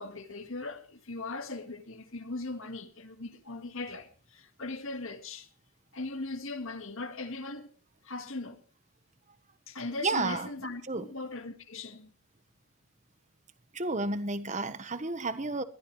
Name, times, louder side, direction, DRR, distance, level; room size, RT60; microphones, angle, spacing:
voice 1, 0.0-5.5 5.9-7.8 8.0-8.6 9.7-12.1, left 2 dB, 70° left, 1.9 m, -39 dB
voice 2, 10.0-10.5 10.9-11.1 13.7-15.6, right 3 dB, 35° right, 1.2 m, -31 dB
21.5 x 14.0 x 3.3 m
head